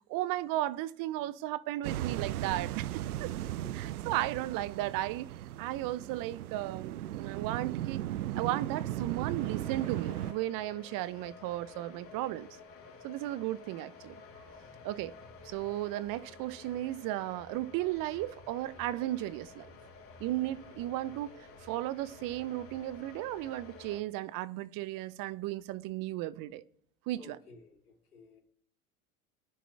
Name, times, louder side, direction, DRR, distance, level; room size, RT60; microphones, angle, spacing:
voice 1, 0.1-3.3 3.7-8.0 8.3-12.5 13.0-14.1 14.8-15.1 15.4-19.7 20.2-26.6 27.1-27.4, right 15 dB, 50° right, 0.9 m, -35 dB
sound 1, 1.8-10.3, right 13 dB, 80° right, 0.6 m, -37 dB
voice 2, 3.5-3.9 27.2-28.4, left 3 dB, 85° left, 3.7 m, -55 dB
sound 2, 9.4-24.0, left 4 dB, 30° left, 3.4 m, -52 dB
23.0 x 10.0 x 3.5 m
hypercardioid pair, 80°, 44 cm